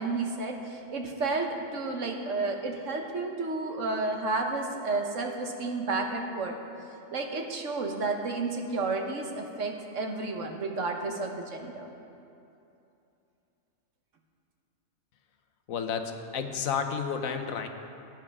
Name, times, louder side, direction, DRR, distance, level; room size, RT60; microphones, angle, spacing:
voice 1, 0.0-6.5 7.1-11.9, right 3 dB, 65° right, 2 dB, 1.4 m, -31 dB
voice 2, 15.7-17.7, left 6 dB, 75° left, 6 dB, 1.2 m, -31 dB
18.5 x 9.0 x 3.6 m, 2.7 s
omnidirectional pair, 1.5 m